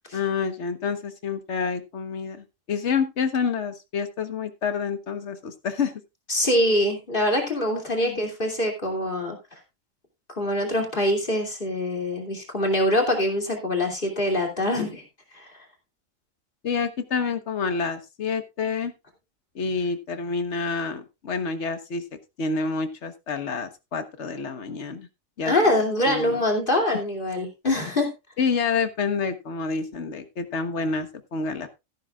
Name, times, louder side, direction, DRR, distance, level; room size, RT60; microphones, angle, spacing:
voice 1, 0.1-5.9 8.0-8.2 16.6-18.9 19.5-22.0 22.4-25.1 25.4-25.5 26.1-26.4 28.4-31.7, left 5 dB, 55° left, 9 dB, 1.5 m, -28 dB
voice 2, 6.3-9.4 10.3-15.0 15.3-15.5 25.5-28.1, left 1 dB, 40° left, 2 dB, 2.9 m, -24 dB
14.0 x 12.0 x 2.4 m, 0.24 s
omnidirectional pair, 1.4 m